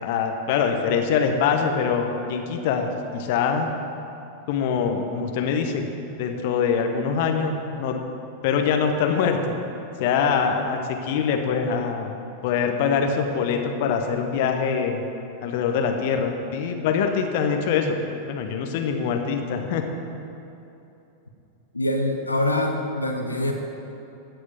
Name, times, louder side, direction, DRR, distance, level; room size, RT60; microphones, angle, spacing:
voice 1, 0.0-3.7 4.5-5.8 6.2-8.0 8.4-9.5 10.0-12.2 12.4-15.0 15.4-19.8, left 6 dB, 50° left, 4 dB, 1.0 m, -24 dB
voice 2, 21.7-23.5, left 1 dB, 80° left, 4 dB, 0.9 m, -24 dB
14.5 x 4.9 x 7.5 m, 2.9 s
figure-of-eight pair, 90°, 0 cm